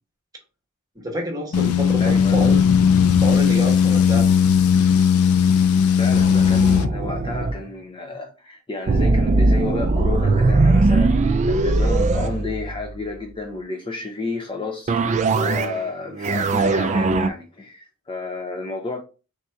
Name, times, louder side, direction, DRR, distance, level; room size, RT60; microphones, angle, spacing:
voice 1, 0.9-2.6 3.2-4.3, equal, 15° right, 1.1 m, -28 dB
sound 1, 1.5-6.9, left 7 dB, 75° left, 0.4 m, -17 dB
voice 2, 2.0-2.4 6.0-19.0, left 3 dB, 25° left, 0.6 m, -31 dB
sound 2, 6.1-7.6 8.9-13.1 14.9-15.8 16.1-17.3, right 3 dB, 35° right, 0.3 m, -20 dB
3.6 x 2.7 x 4.3 m
head